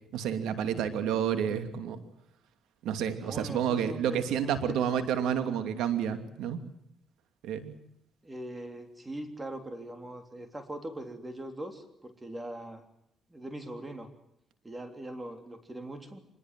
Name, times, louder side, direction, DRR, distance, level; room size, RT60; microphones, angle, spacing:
voice 1, 0.1-2.0 2.8-6.6 7.4-7.7, right 8 dB, 90° right, 9 dB, 2.7 m, -30 dB
voice 2, 3.2-5.3 8.2-12.8 13.3-14.1 14.6-16.2, right 1 dB, 15° right, 7 dB, 3.5 m, -41 dB
25.0 x 21.0 x 7.7 m, 0.73 s
cardioid pair, 90°, 0 cm